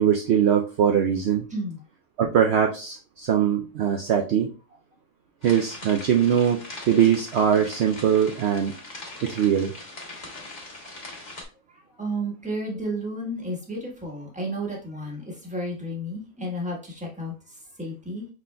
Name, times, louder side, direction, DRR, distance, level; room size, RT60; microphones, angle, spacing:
voice 1, 0.0-1.5 2.2-4.5 5.4-8.7 9.2-9.7, right 8 dB, 70° right, 2 dB, 0.6 m, -21 dB
sound 1, 5.4-11.4, left 2 dB, 30° left, 1.2 m, -41 dB
voice 2, 11.7-18.3, right 1 dB, 5° right, -2 dB, 1.2 m, -32 dB
5.9 x 3.8 x 2.2 m, 0.34 s
omnidirectional pair, 1.6 m